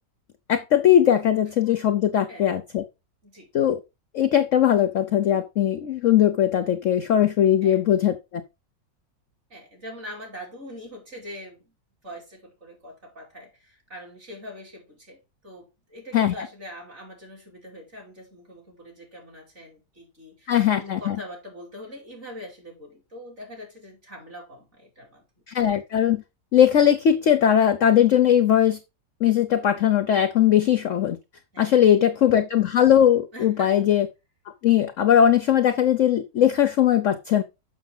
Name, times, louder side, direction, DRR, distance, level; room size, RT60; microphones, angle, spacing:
voice 1, 0.5-2.8 3.5-3.8 4.1-8.2 16.1-16.5 20.5-21.2 25.5-26.2 26.5-28.8 29.2-31.2 31.6-34.1 34.6-37.4, left 10 dB, 65° left, 0.7 m, -19 dB
voice 2, 9.5-11.7 12.0-25.2 31.5-32.2 33.3-33.9, equal, 40° right, 3.1 m, -43 dB
7.0 x 6.0 x 3.8 m
omnidirectional pair, 2.0 m